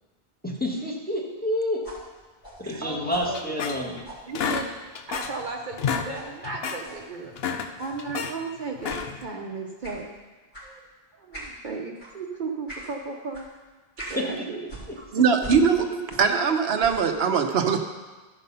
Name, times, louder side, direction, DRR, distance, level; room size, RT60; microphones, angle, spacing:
voice 1, 0.4-1.8 2.6-4.0 14.1-14.4 15.1-15.2, left 1 dB, 10° left, -4 dB, 1.5 m, -29 dB
sound 1, 1.8-4.9 5.1-5.4 6.1-6.3 6.8-7.0 7.8-8.1 8.9-9.1 9.8-10.1 10.5-10.7 11.3-11.6 12.0-12.2 12.7-12.9 13.3-13.5 14.0-14.2 14.7-16.4 16.7-17.1, right 1 dB, 50° left, 2.9 m, -42 dB
voice 2, 2.8-3.8 4.3-4.7 5.1-7.3 7.8-10.1 10.6-10.8 11.2-13.5 14.1-14.6 15.0-15.1 15.7-16.2, right 4 dB, 50° right, 1 dB, 0.9 m, -35 dB
sound 2, 3.3-4.0 4.3-5.4 5.7-6.1 6.4-6.8 7.2-8.3 8.8-9.3, left 6 dB, 75° left, 0.9 m, -30 dB
voice 3, 15.1-15.8 16.2-17.8, right 6 dB, 80° right, 5 dB, 1.0 m, -21 dB
13.5 x 5.3 x 5.5 m, 1.3 s
omnidirectional pair, 1.1 m